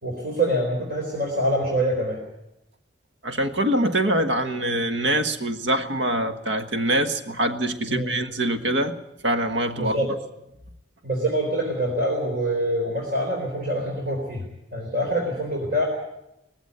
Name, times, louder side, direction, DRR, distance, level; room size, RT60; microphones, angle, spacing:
voice 1, 0.0-2.2 7.9-8.1 9.8-10.1 11.0-14.4 14.7-15.8, right 1 dB, 50° right, -1 dB, 4.1 m, -25 dB
voice 2, 3.2-9.0 9.2-10.1, right 1 dB, 70° right, 8 dB, 1.4 m, -24 dB
19.0 x 15.5 x 9.7 m, 0.86 s
head